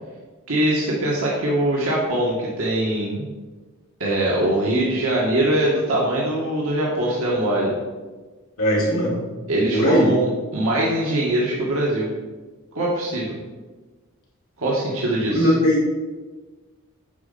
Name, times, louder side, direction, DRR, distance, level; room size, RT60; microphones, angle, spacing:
voice 1, 0.5-3.3 4.0-7.7 9.5-12.1 12.7-13.4 14.6-15.5, right 1 dB, 75° right, -5 dB, 1.6 m, -22 dB
voice 2, 8.6-9.2 9.7-10.1 15.3-15.8, equal, 75° left, -4 dB, 2.8 m, -18 dB
9.4 x 4.3 x 5.4 m, 1.3 s
head